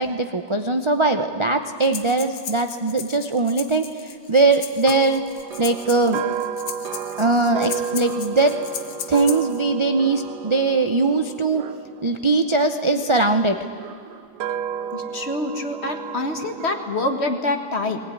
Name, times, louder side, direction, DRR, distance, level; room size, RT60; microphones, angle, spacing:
voice 1, 0.0-5.2 5.6-6.2 7.2-8.6 9.1-11.7 12.0-13.6, right 3 dB, 40° right, 6 dB, 0.4 m, -20 dB
Breathing, 1.8-9.6, left 8 dB, 75° left, 1.7 m, -37 dB
sound 1, 4.8-13.0 13.7-17.2, right 8 dB, 80° right, 1.4 m, -32 dB
voice 2, 14.9-18.0, left 2 dB, 40° left, 5 dB, 1.8 m, -26 dB
19.0 x 19.0 x 9.8 m, 2.2 s
omnidirectional pair, 1.8 m